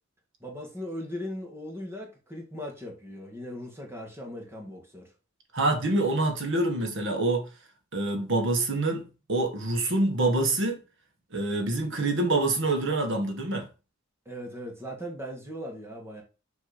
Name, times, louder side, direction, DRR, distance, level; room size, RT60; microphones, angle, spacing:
voice 1, 0.4-5.1 14.2-16.2, equal, 10° right, 1.7 m, -38 dB
voice 2, 5.5-7.5 7.9-10.8 11.3-13.7, right 2 dB, 60° right, 1.5 m, -26 dB
6.5 x 3.3 x 5.0 m
head